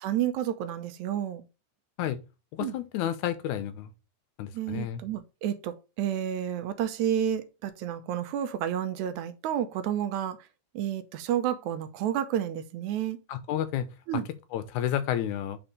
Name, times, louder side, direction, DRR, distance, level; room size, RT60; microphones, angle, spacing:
voice 1, 0.0-1.4 2.6-2.8 4.5-10.4 10.7-13.2 14.1-14.3, right 10 dB, 80° right, 2.0 m, -30 dB
voice 2, 2.6-3.9 4.4-5.0 13.3-13.9 14.1-14.2 14.5-15.6, left 11 dB, 90° left, 2.1 m, -30 dB
5.0 x 4.4 x 5.2 m
omnidirectional pair, 3.4 m